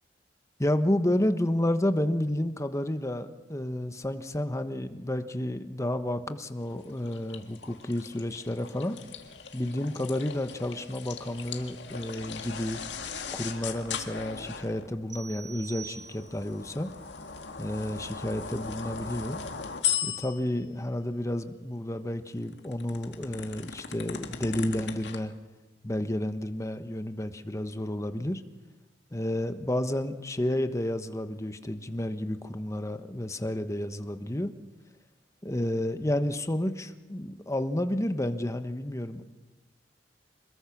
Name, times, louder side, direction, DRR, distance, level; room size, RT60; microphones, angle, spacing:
voice 1, 0.6-9.0 9.5-12.8 13.3-16.9 17.6-19.4 20.0-25.3 25.8-28.4 29.1-34.5 35.4-39.2, left 1 dB, 15° left, 9 dB, 1.2 m, -31 dB
sound 1, 6.7-14.9 15.8-20.6 22.3-25.2, left 7 dB, 80° left, 1.9 m, -38 dB
sound 2, 15.1-16.6, right 7 dB, 45° right, 1.9 m, -45 dB
27.0 x 21.0 x 6.1 m, 1.1 s
head